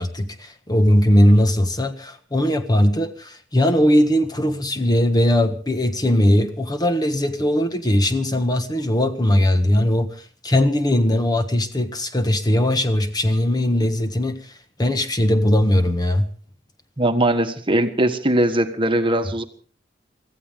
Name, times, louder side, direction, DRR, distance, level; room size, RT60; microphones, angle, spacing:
voice 1, 0.0-14.5 14.8-16.3, left 1 dB, 20° left, 8 dB, 1.5 m, -19 dB
voice 2, 17.0-19.4, right 1 dB, 30° right, 7 dB, 1.5 m, -20 dB
25.0 x 15.5 x 3.7 m, 0.41 s
head